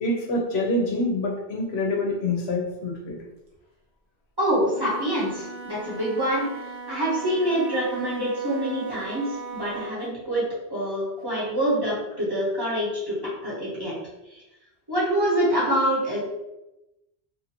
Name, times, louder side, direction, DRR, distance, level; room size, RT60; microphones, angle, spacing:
voice 1, 0.0-3.2, left 2 dB, 80° left, 0 dB, 0.8 m, -26 dB
voice 2, 4.4-6.5 6.9-14.0 14.3-14.4 14.9-16.2, equal, 25° right, -8 dB, 0.9 m, -26 dB
Wind instrument woodwind instrument, 4.6-10.0, right 3 dB, 55° right, 0.8 m, -38 dB
2.6 x 2.5 x 2.8 m, 0.94 s
omnidirectional pair, 1.1 m